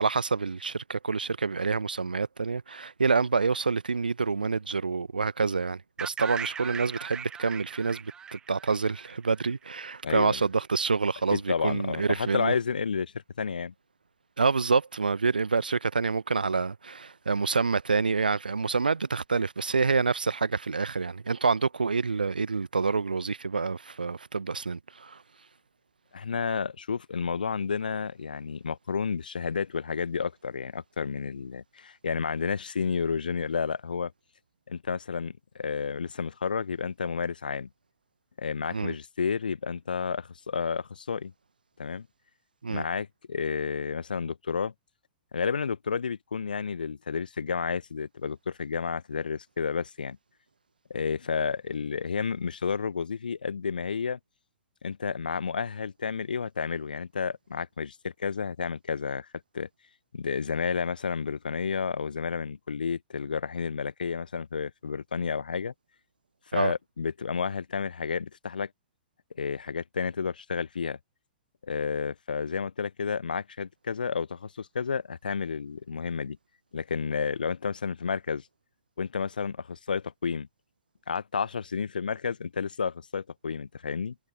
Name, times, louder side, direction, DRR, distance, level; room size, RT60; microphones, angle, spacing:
voice 1, 0.0-12.5 14.4-25.2 38.7-38.9 42.6-42.8 66.5-66.7, right 4 dB, 75° right, 0.8 m, -27 dB
sound 1, 6.0-9.9, right 7 dB, 15° right, 0.8 m, -39 dB
voice 2, 10.0-10.4 11.3-13.7 26.1-34.1 34.7-37.7 38.4-41.3 41.8-42.1 42.7-44.7 45.3-50.2 50.9-54.2 54.8-59.3 59.5-59.7 60.1-65.7 66.5-68.7 69.4-71.0 71.7-76.4 76.7-78.4 79.0-80.5 81.1-84.1, left 6 dB, 70° left, 1.1 m, -31 dB
figure-of-eight pair, 105°, 5 cm